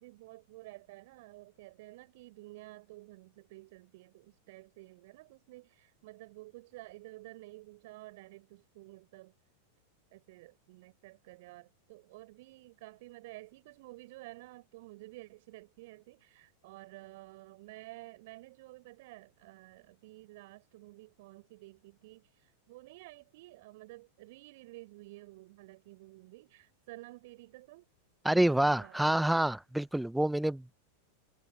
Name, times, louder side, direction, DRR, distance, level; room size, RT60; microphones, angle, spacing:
voice 1, 0.0-9.3 10.1-27.9 28.3-29.2, right 20 dB, 50° right, 5.1 m, -52 dB
voice 2, 28.2-30.7, right 1 dB, 5° right, 1.3 m, -27 dB
figure-of-eight pair, 90°, 0 cm